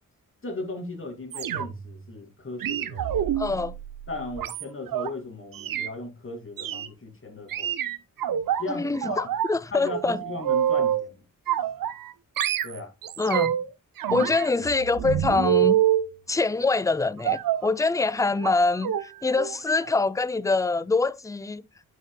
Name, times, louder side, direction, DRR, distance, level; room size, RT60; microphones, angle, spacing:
voice 1, 0.4-3.6 4.1-7.7 8.6-9.3 9.7-11.2 12.6-12.9 14.1-14.3, left 2 dB, 40° left, 2.7 m, -36 dB
sound 1, 1.3-1.9 2.6-5.1 5.5-5.9 6.6-6.9 7.5-8.6 9.0-9.6 9.9-11.1 11.5-12.1 12.4-13.7 14.0-16.1 17.2-17.7 18.4-18.6 18.8-19.0 19.4-19.6 19.9-20.0, right 11 dB, 80° right, 0.7 m, -26 dB
voice 2, 3.4-3.8 8.7-10.2 13.2-13.6 14.1-15.8 16.3-21.6, left 3 dB, 10° left, 0.4 m, -25 dB
9.2 x 5.7 x 2.3 m
cardioid pair, 75°, 34 cm